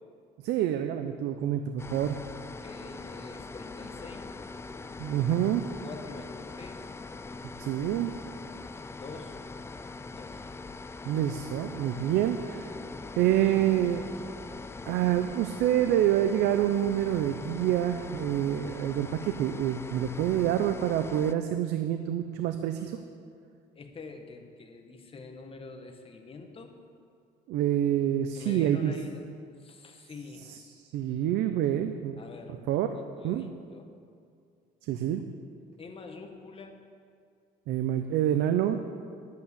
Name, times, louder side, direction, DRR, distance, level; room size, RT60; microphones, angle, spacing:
voice 1, 0.4-1.6 1.9-2.2 5.0-5.6 7.6-8.1 11.0-12.7 13.2-14.3 14.9-23.0 27.5-28.9 30.9-32.2 32.7-32.9 33.2-33.4 34.9-35.2 37.7-38.8, right 11 dB, 85° right, 8 dB, 0.7 m, -27 dB
sound 1, 1.8-21.3, left 3 dB, 15° left, 0.4 m, -42 dB
voice 2, 2.6-4.3 5.8-6.9 9.0-9.4 10.1-10.4 23.7-26.7 28.3-29.2 29.5-30.4 32.2-32.6 32.9-33.9 35.8-36.8, left 4 dB, 35° left, 4 dB, 1.5 m, -45 dB
10.5 x 8.5 x 8.2 m, 2.3 s
cardioid pair, 110°, 17 cm